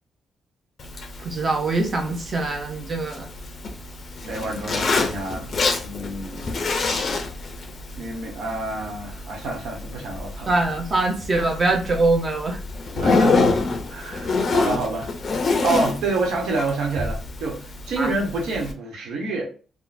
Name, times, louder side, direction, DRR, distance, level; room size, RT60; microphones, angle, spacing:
Zipper (clothing), 0.8-18.7, left 3 dB, 35° left, 0.5 m, -27 dB
voice 1, 1.2-3.3 10.5-12.6 18.0-18.1, right 2 dB, 30° right, 0.7 m, -23 dB
voice 2, 4.2-5.5 5.8-6.8 8.0-10.5 11.4-11.5 12.9-13.4 13.9-15.1 15.6-19.5, right 3 dB, 80° right, 1.0 m, -28 dB
3.6 x 2.1 x 2.6 m
cardioid pair, 170°, 0 cm